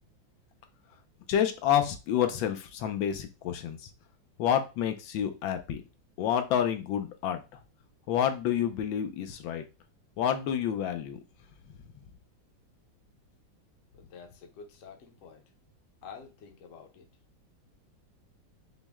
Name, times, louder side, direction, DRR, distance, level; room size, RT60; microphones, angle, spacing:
voice 1, 1.3-3.9 4.4-5.8 6.2-7.4 8.1-9.6 10.2-11.2, left 9 dB, 85° left, 7 dB, 1.4 m, -28 dB
voice 2, 14.0-15.4 16.0-17.0, left 6 dB, 55° left, 3 dB, 0.9 m, -48 dB
6.1 x 2.1 x 3.5 m, 0.29 s
omnidirectional pair, 2.1 m